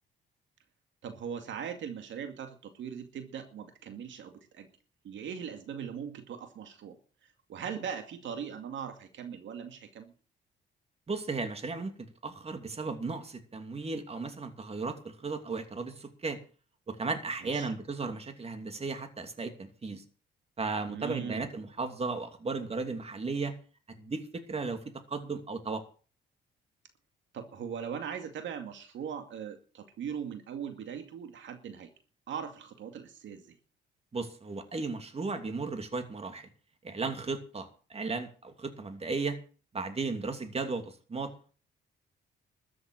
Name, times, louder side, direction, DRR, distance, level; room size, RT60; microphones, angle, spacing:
voice 1, 1.0-4.7 5.0-7.0 7.5-10.1 17.4-17.7 20.9-21.5 27.3-31.9 32.3-33.6, right 7 dB, 70° right, 6 dB, 2.3 m, -40 dB
voice 2, 11.1-16.4 16.9-20.0 20.6-23.5 24.0-24.8 25.1-25.8 34.1-36.5 36.8-39.4 39.7-41.5, right 4 dB, 30° right, 7 dB, 2.7 m, -35 dB
13.5 x 7.9 x 8.7 m, 0.39 s
cardioid pair, 90°, 20 cm